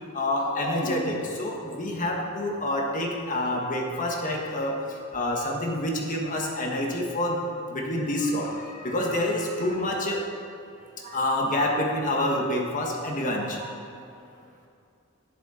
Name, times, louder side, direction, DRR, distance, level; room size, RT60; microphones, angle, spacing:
voice 1, 0.1-4.8 5.1-7.4 7.7-8.5 8.8-10.2 11.1-13.6, left 1 dB, 40° left, 0 dB, 1.5 m, -27 dB
voice 2, 10.8-11.2 13.3-14.7, right 4 dB, 40° right, 0 dB, 1.5 m, -46 dB
11.5 x 10.5 x 4.3 m, 2.5 s
head